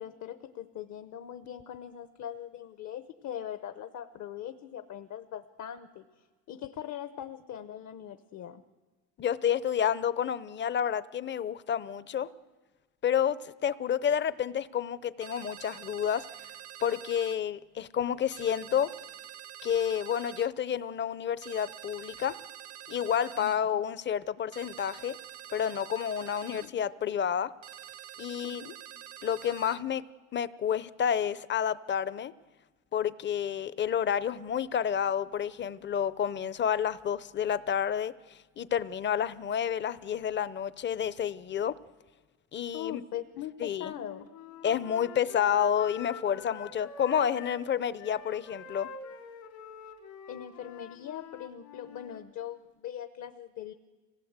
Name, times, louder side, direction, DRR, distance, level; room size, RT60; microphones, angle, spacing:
voice 1, 0.0-8.6 23.4-23.8 26.4-26.8 28.4-28.8 42.7-44.3 50.3-53.7, left 10 dB, 55° left, 9 dB, 0.9 m, -41 dB
voice 2, 9.2-12.3 13.0-16.3 16.8-18.9 19.6-22.4 22.9-25.2 25.5-27.5 28.2-28.6 29.2-30.0 30.3-32.3 32.9-41.8 42.5-43.0 43.6-43.9 44.6-48.9, left 8 dB, 35° left, 17 dB, 0.6 m, -30 dB
sound 1, 15.2-17.4 18.3-20.5 21.4-23.6 24.5-26.7 27.6-29.8, right 10 dB, 45° right, 0.6 m, -47 dB
Wind instrument woodwind instrument, 43.8-47.6 48.0-52.2, left 4 dB, 80° left, 3.1 m, -46 dB
26.0 x 18.0 x 8.1 m, 1.3 s
cardioid pair, 120°, 34 cm